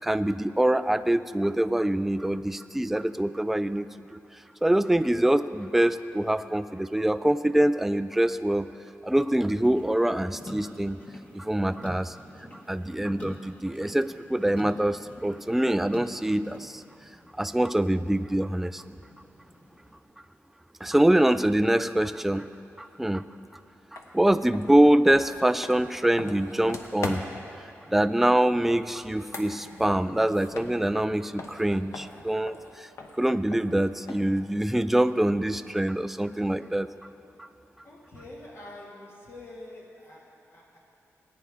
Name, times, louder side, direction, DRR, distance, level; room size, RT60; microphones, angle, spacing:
voice 1, 0.0-4.2 4.6-8.7 9.0-11.0 11.3-12.2 12.7-16.8 17.4-18.8 20.8-22.5 22.8-23.2 23.9-27.2 27.9-32.9 33.2-36.9 37.4-37.5, right 1 dB, 5° right, 12 dB, 0.3 m, -24 dB
sound 1, 9.3-20.0, left 1 dB, 25° left, 1.4 m, -46 dB
sound 2, 23.9-24.1 24.5-27.5 29.0-31.1 31.4-34.4, left 3 dB, 75° left, 1.0 m, -40 dB
voice 2, 37.8-40.8, left 1 dB, 55° left, -4 dB, 2.1 m, -46 dB
19.0 x 9.5 x 3.6 m, 2.6 s
wide cardioid pair, 115°, 5 cm